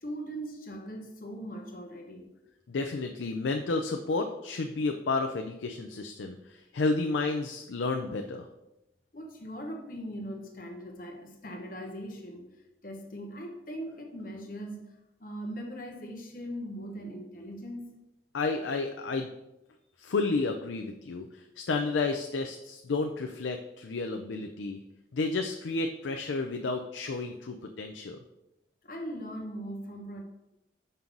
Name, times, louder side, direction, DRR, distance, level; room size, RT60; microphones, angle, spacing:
voice 1, 0.0-2.3 9.1-12.5 12.8-18.0 28.8-30.2, equal, 50° left, 3 dB, 1.0 m, -40 dB
voice 2, 2.7-8.5 18.3-19.3 20.0-24.8 25.1-28.2, left 3 dB, 90° left, 5 dB, 0.5 m, -31 dB
5.5 x 3.8 x 5.9 m, 0.90 s
head